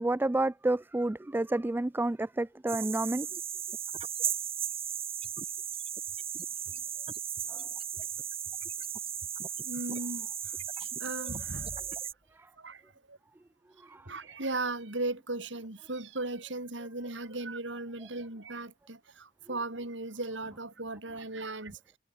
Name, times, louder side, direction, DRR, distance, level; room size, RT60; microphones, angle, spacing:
voice 1, 0.0-3.3 7.5-7.7 13.9-14.0, right 2 dB, 10° right, 0.3 m, -30 dB
sound 1, 2.7-12.1, right 9 dB, 30° right, 3.1 m, -36 dB
voice 2, 9.6-10.3 10.8-11.8 12.6-12.8 13.1-13.2 14.0-21.8, right 2 dB, 80° right, 4.1 m, -37 dB
head